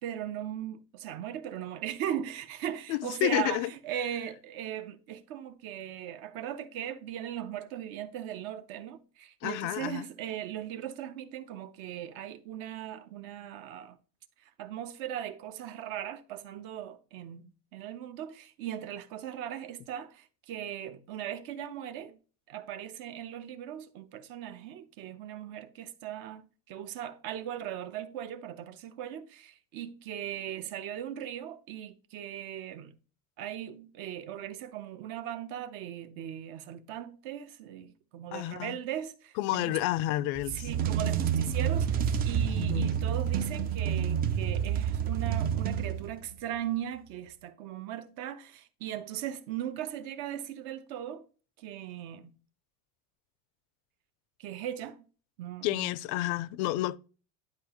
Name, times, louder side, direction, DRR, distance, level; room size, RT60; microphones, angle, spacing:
voice 1, 0.0-14.0 14.6-22.2 22.5-26.4 26.7-32.9 33.4-39.8 40.5-51.2 51.6-52.3 54.4-55.0 55.4-55.9 56.7-56.8, right 10 dB, 60° right, 0.7 m, -38 dB
voice 2, 2.9-3.7 9.4-10.0 38.3-38.8 39.4-40.7 42.5-42.9 55.6-57.0, left 16 dB, 65° left, 0.5 m, -30 dB
sound 1, 40.4-46.3, right 8 dB, 25° right, 0.3 m, -29 dB
10.5 x 4.7 x 2.9 m
cardioid pair, 160°, 41 cm